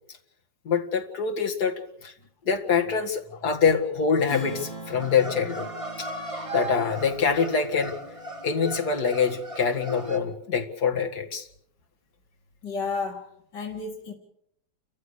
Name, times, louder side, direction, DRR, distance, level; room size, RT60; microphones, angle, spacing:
voice 1, 0.7-2.1 2.4-5.7 6.5-7.9 8.4-11.5, left 6 dB, 65° left, 2 dB, 2.5 m, -25 dB
Strum, 4.3-9.2, equal, 30° left, 5.8 m, -42 dB
sound 1, 5.0-10.2, right 1 dB, 20° right, 2.8 m, -37 dB
voice 2, 12.6-13.3 13.5-14.1, left 4 dB, 90° left, -2 dB, 2.9 m, -31 dB
30.0 x 14.5 x 6.6 m, 0.71 s
omnidirectional pair, 1.8 m